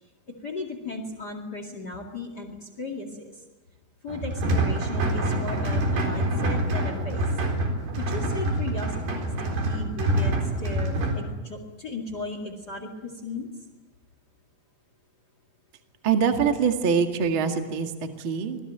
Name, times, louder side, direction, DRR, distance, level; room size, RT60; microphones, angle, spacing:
voice 1, 0.4-3.3 4.0-7.2 8.0-13.5, left 2 dB, 55° left, 7 dB, 1.1 m, -36 dB
sound 1, 4.1-11.2, right 1 dB, 50° right, 5.7 m, -26 dB
voice 2, 16.0-17.9 18.2-18.6, right 6 dB, 75° right, 5 dB, 1.1 m, -23 dB
25.5 x 21.0 x 9.1 m, 1.2 s
omnidirectional pair, 5.9 m